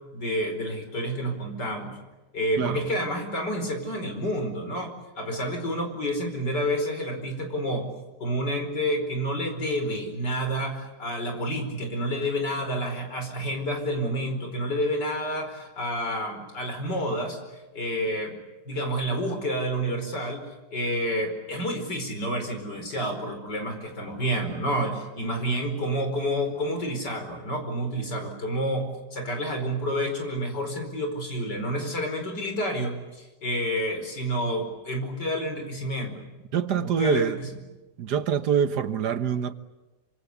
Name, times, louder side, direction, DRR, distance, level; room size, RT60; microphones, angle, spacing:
voice 1, 0.0-2.0 2.3-7.9 8.2-17.4 17.7-18.4 18.7-20.5 20.7-36.2 36.7-37.5, equal, 80° left, 5.5 m, -29 dB
voice 2, 36.5-37.4 38.0-39.5, right 8 dB, 75° right, 1.7 m, -25 dB
27.5 x 25.5 x 8.2 m
omnidirectional pair, 1.8 m